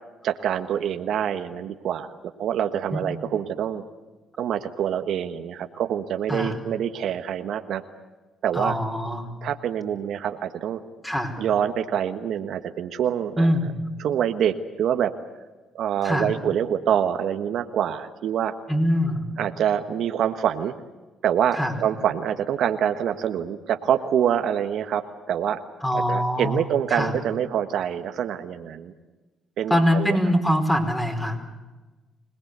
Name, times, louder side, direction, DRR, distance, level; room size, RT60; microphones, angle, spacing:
voice 1, 0.2-2.1 2.4-3.8 4.4-7.8 8.4-8.7 9.4-10.8 11.4-13.5 14.0-15.1 15.7-18.5 19.4-20.7 21.2-25.6 25.9-28.9 29.6-30.2, right 9 dB, 70° right, 7 dB, 1.4 m, -25 dB
voice 2, 8.5-9.3 11.0-11.4 13.4-13.7 16.0-16.3 18.7-19.2 21.5-21.7 25.8-27.1 29.7-31.4, equal, 10° left, 4 dB, 5.1 m, -23 dB
26.0 x 19.5 x 8.2 m, 1.2 s
cardioid pair, 85°, 0 cm